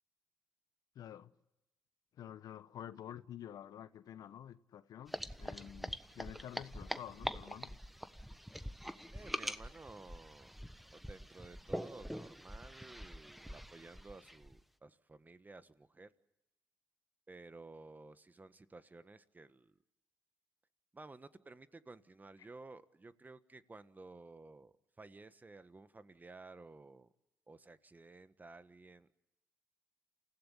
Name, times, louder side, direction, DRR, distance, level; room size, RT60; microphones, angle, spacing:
voice 1, 0.9-1.3 2.2-7.8, left 10 dB, 70° left, 0.9 m, -49 dB
sound 1, 5.1-14.6, equal, ahead, 1.2 m, -44 dB
voice 2, 9.1-10.5 10.9-16.1 17.3-19.8 20.9-27.1 27.5-29.1, right 3 dB, 25° right, 1.4 m, -54 dB
28.0 x 16.0 x 8.4 m
supercardioid pair, 60°, 7 cm